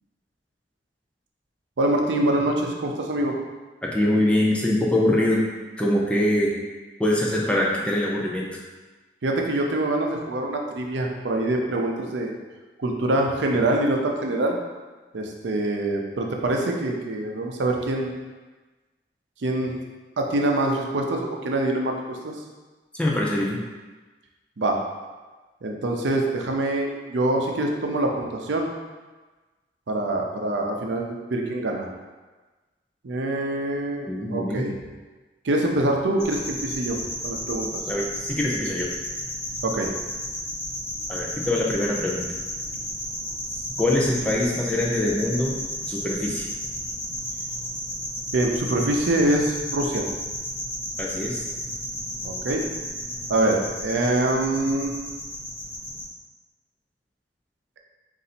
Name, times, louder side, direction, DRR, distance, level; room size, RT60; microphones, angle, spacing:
voice 1, 1.8-3.4 9.2-12.3 12.8-14.6 15.1-18.1 19.4-19.7 20.2-22.3 24.6-24.8 25.6-28.7 29.9-31.9 33.0-34.7 35.4-37.7 39.6-39.9 48.3-50.1 52.2-52.6 53.3-54.9, right 1 dB, 90° right, 1 dB, 0.6 m, -25 dB
voice 2, 3.8-5.5 5.8-6.6 7.0-8.6 22.9-23.6 34.1-34.7 37.9-38.9 41.1-42.3 43.8-45.6 45.9-46.5 51.0-51.4, left 1 dB, 5° left, -4 dB, 0.5 m, -23 dB
sound 1, 36.2-56.0, equal, 35° left, 1.4 m, -33 dB
4.0 x 2.6 x 4.2 m, 1.3 s
head